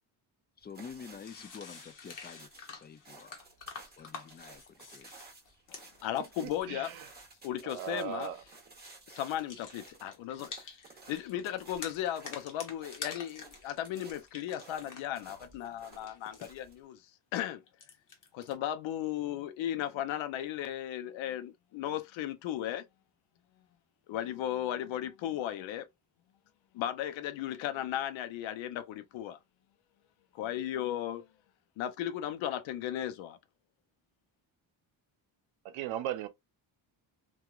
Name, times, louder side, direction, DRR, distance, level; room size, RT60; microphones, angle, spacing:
voice 1, 0.6-3.3 4.0-5.1, left 6 dB, 25° left, 0.3 m, -48 dB
sound 1, 0.6-16.8, right 3 dB, 20° right, 1.1 m, -55 dB
sound 2, 0.7-0.8 1.1-6.7 8.0-8.4 8.7-10.9 11.2-15.2 15.5-16.5 17.7-18.5, left 5 dB, 45° left, 1.0 m, -48 dB
voice 2, 5.7-7.0 7.4-8.3 9.1-10.5 11.1-17.0 17.3-17.6 18.3-22.8 24.1-25.9 26.7-29.4 30.3-31.2 31.8-33.4, left 11 dB, 85° left, 0.6 m, -36 dB
voice 3, 6.4-7.1 7.6-8.4 35.6-36.3, right 11 dB, 85° right, 0.6 m, -37 dB
2.8 x 2.4 x 2.3 m
cardioid pair, 80°, 45 cm